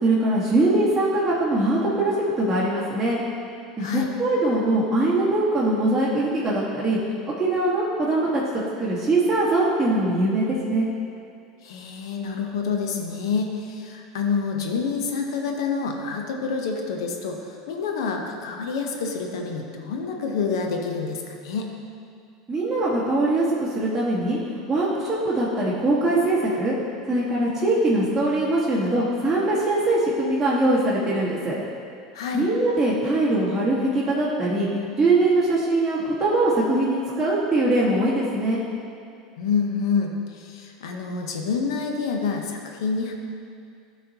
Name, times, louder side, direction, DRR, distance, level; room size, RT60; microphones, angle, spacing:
voice 1, 0.0-3.2 3.8-7.0 7.4-10.9 22.5-26.7 27.1-31.5 32.3-38.6, right 2 dB, 15° right, -9 dB, 1.4 m, -22 dB
voice 2, 3.8-4.1 11.6-21.7 32.1-32.5 39.4-43.1, left 5 dB, 75° left, 3 dB, 0.8 m, -27 dB
12.5 x 4.1 x 2.8 m, 2.4 s
hypercardioid pair, 90°, 3 cm